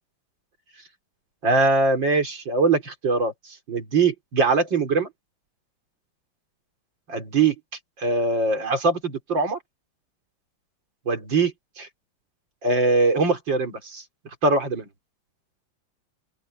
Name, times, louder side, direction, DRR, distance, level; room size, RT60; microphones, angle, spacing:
voice 1, 1.4-3.3 3.7-5.1 7.1-7.5 8.0-9.6 11.1-11.9 12.6-14.0 14.4-14.8, right 3 dB, 70° right, 4.5 m, -22 dB
open air
omnidirectional pair, 2.1 m